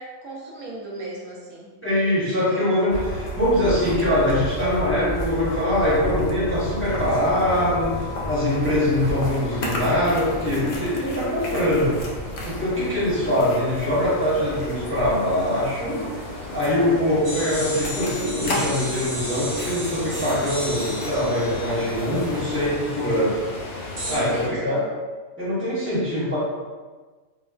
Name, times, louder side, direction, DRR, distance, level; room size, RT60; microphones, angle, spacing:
voice 1, 0.0-1.7 2.3-2.7 24.1-24.9, right 2 dB, 70° right, -3 dB, 1.0 m, -36 dB
voice 2, 1.8-12.0 12.5-16.1 16.5-23.4 24.1-24.9 25.4-26.4, left 1 dB, 10° left, -9 dB, 0.8 m, -23 dB
sound 1, 2.9-22.7, equal, 75° left, 0.4 m, -33 dB
sound 2, 8.5-24.5, left 2 dB, 55° left, 0.8 m, -36 dB
sound 3, 17.2-22.9 24.0-24.2, equal, 35° right, 1.3 m, -34 dB
4.4 x 2.1 x 2.3 m, 1.4 s
omnidirectional pair, 1.5 m